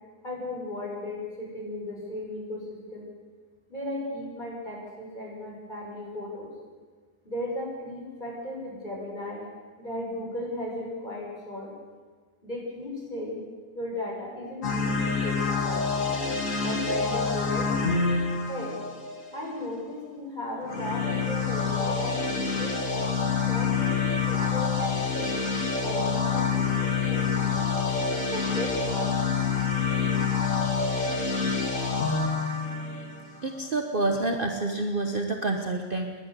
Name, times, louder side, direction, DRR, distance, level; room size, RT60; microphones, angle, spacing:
voice 1, 0.2-3.1 3.7-6.5 7.2-9.5 9.8-11.7 12.4-13.4 13.7-16.0 16.6-18.1 18.5-18.8 19.3-22.8 23.4-27.7 28.1-29.3, left 1 dB, 30° left, -4 dB, 6.9 m, -36 dB
sound 1, 14.6-19.5 20.6-33.7, left 5 dB, 50° left, 2.7 m, -27 dB
voice 2, 33.4-36.1, right 2 dB, 35° right, 3 dB, 1.3 m, -28 dB
28.5 x 11.5 x 8.2 m, 1.5 s
omnidirectional pair, 1.7 m